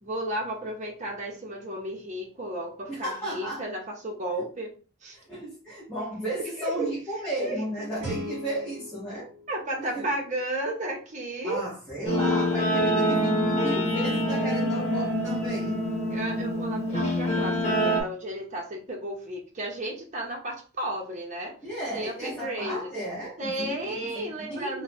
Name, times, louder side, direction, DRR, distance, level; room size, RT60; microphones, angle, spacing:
voice 1, 0.0-4.7 5.0-5.2 6.6-6.9 7.4-8.1 9.5-11.6 16.1-21.6 21.9-22.9 23.4-24.8, right 1 dB, 35° right, 0 dB, 0.9 m, -33 dB
voice 2, 2.9-3.6 5.1-9.3 9.8-10.1 11.4-15.8 21.6-24.8, right 1 dB, 10° left, -9 dB, 1.3 m, -34 dB
Guitar, 8.0-10.8, left 1 dB, 10° right, 1.8 m, -40 dB
Guitar 2, 12.0-18.0, equal, 30° left, 1.2 m, -25 dB
3.0 x 2.3 x 4.2 m, 0.36 s
head